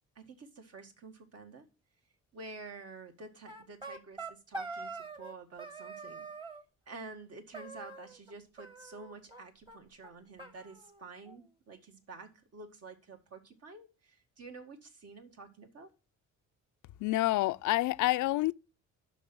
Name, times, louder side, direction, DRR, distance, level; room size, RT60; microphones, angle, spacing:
voice 1, 0.2-1.7 2.3-6.3 6.9-15.9, right 3 dB, 55° right, 1.9 m, -49 dB
sound 1, 3.5-5.3 5.6-6.6 7.5-8.3 8.6-9.4 9.7-9.8 10.0-10.1 10.4-11.4, right 3 dB, 15° right, 1.3 m, -44 dB
voice 2, 17.0-18.5, left 17 dB, 80° left, 0.5 m, -28 dB
7.0 x 6.0 x 6.1 m
cardioid pair, 90°, 30 cm